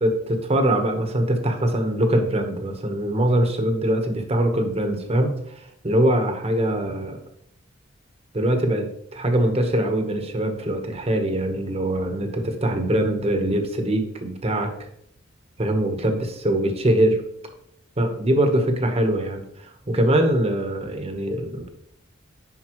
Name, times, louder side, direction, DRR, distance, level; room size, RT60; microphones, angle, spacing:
voice 1, 0.0-7.2 8.3-8.9 9.1-14.7 15.6-17.2 18.0-21.7, right 1 dB, 35° right, 5 dB, 1.1 m, -22 dB
9.7 x 5.5 x 3.0 m, 0.72 s
head